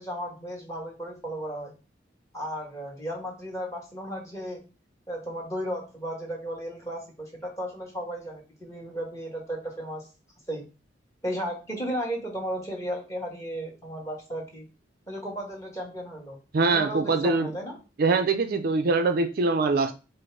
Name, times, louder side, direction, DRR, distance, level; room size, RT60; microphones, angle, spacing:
voice 1, 0.0-1.7 2.3-4.6 5.1-10.1 10.5-10.6 11.2-14.6 15.1-16.4 16.6-17.8, equal, 15° left, 1.4 m, -34 dB
voice 2, 16.5-17.5 18.0-19.9, right 3 dB, 50° right, 0.4 m, -23 dB
5.0 x 2.0 x 4.6 m
head